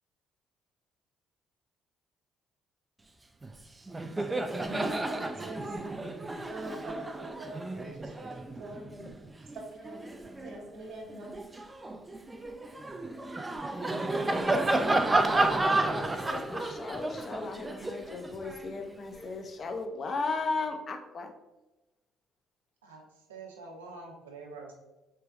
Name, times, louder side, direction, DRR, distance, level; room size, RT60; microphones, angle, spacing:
Laughter, 3.4-3.6 3.9-10.6 11.1-19.3, right 2 dB, 20° right, 0.4 m, -31 dB
voice 1, 4.0-5.8 6.5-9.1 9.4-11.3, right 2 dB, 60° right, 0 dB, 1.0 m, -44 dB
voice 2, 15.2-21.3, left 3 dB, 40° left, 5 dB, 0.5 m, -36 dB
voice 3, 22.8-24.8, right 3 dB, 80° right, 0 dB, 0.6 m, -46 dB
3.3 x 3.3 x 3.3 m, 1.0 s
figure-of-eight pair, 50°, 0 cm